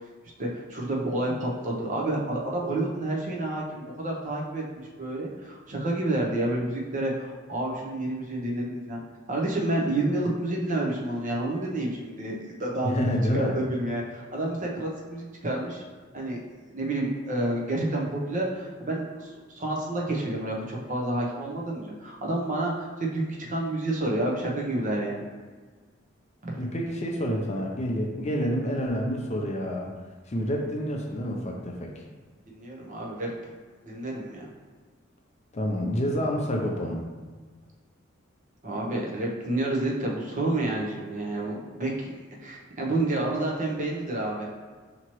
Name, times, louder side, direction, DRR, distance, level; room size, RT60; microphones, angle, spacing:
voice 1, 0.4-9.0 9.3-13.0 13.3-15.8 16.1-16.4 16.7-25.2 26.4-26.6 32.5-33.5 33.8-34.5 38.6-42.1 42.4-44.4, right 1 dB, 40° right, -2 dB, 0.8 m, -29 dB
voice 2, 12.8-13.5 26.6-29.9 30.3-32.0 35.5-37.0, equal, 35° left, 0 dB, 0.5 m, -28 dB
5.7 x 2.9 x 3.0 m, 1.4 s
head